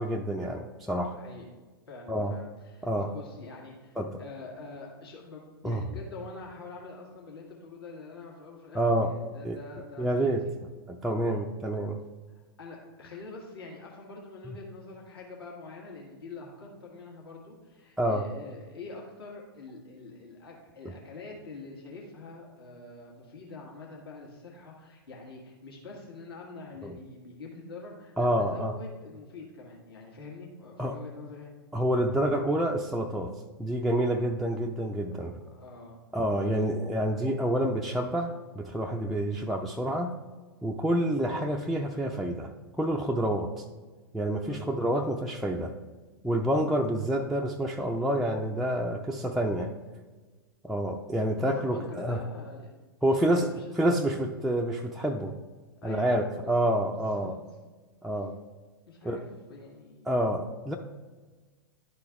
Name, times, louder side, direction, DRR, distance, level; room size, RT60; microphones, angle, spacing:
voice 1, 0.0-1.2 2.1-2.3 2.8-3.1 4.0-4.2 5.6-5.8 8.7-9.1 9.4-9.6 10.0-10.4 10.9-12.0 14.5-14.6 18.0-18.2 26.8-27.0 28.2-28.7 30.8-31.0 31.7-33.3 33.6-35.4 36.1-40.1 40.6-42.5 42.8-43.6 44.1-45.7 46.2-49.7 50.6-52.2 53.0-53.5 53.8-55.3 55.8-57.4 58.0-58.4 59.0-59.2 60.1-60.8, right 1 dB, ahead, 0 dB, 0.3 m, -28 dB
voice 2, 1.1-1.5 1.9-10.5 11.3-11.4 12.6-31.5 35.5-36.0 36.4-36.8 44.5-44.7 51.5-52.7 53.0-53.7 55.8-56.7 56.9-57.3 58.9-60.2, left 3 dB, 70° left, -2 dB, 1.6 m, -45 dB
11.0 x 3.9 x 3.5 m, 1.3 s
figure-of-eight pair, 105°, 13 cm